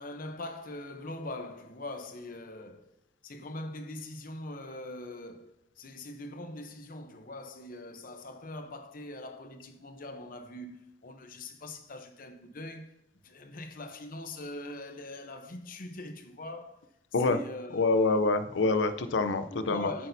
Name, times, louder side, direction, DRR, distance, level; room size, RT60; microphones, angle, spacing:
voice 1, 0.0-2.9 3.2-13.0 13.2-16.8 17.2-18.3 19.5-20.1, left 1 dB, 50° left, 0.8 m, -42 dB
voice 2, 17.7-19.9, left 3 dB, 90° left, 0.6 m, -26 dB
8.7 x 8.2 x 2.7 m
head